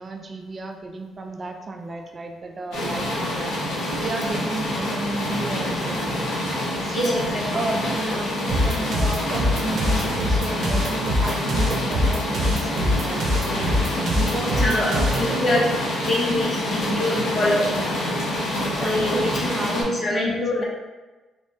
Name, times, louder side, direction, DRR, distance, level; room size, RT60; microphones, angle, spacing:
voice 1, 0.0-3.5 4.0-6.3 6.8-15.6 16.5-18.1 18.7-20.6, right 3 dB, 35° right, 4 dB, 0.3 m, -33 dB
sound 1, 2.7-19.8, left 1 dB, 85° left, 1.1 m, -27 dB
voice 2, 6.9-7.4 8.6-8.7 14.0-15.7 16.1-17.6 18.4-20.6, left 1 dB, 45° left, -3 dB, 1.1 m, -25 dB
sound 2, 8.5-15.3, left 1 dB, 60° right, 0.7 m, -24 dB
3.4 x 3.2 x 2.6 m, 1.2 s
cardioid pair, 90°, 0 cm